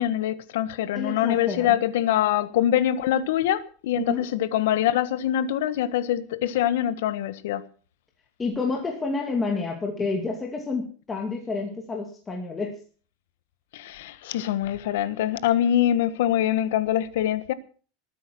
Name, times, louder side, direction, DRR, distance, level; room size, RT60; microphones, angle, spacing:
voice 1, 0.0-7.6 13.7-17.5, left 11 dB, 80° left, 1.3 m, -24 dB
voice 2, 0.9-1.8 3.9-4.3 8.4-12.8, left 3 dB, 15° left, 2.2 m, -29 dB
20.0 x 9.4 x 6.2 m
supercardioid pair, 160°, 0 cm